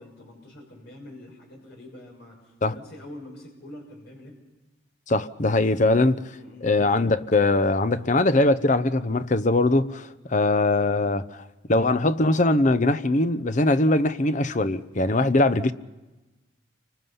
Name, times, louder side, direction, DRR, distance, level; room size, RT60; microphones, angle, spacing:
voice 1, 0.0-4.4 6.3-6.8, left 1 dB, 55° left, 6.3 m, -45 dB
voice 2, 5.1-6.2 6.6-11.4 11.7-15.7, left 2 dB, 40° left, 0.8 m, -21 dB
29.0 x 25.0 x 5.7 m
head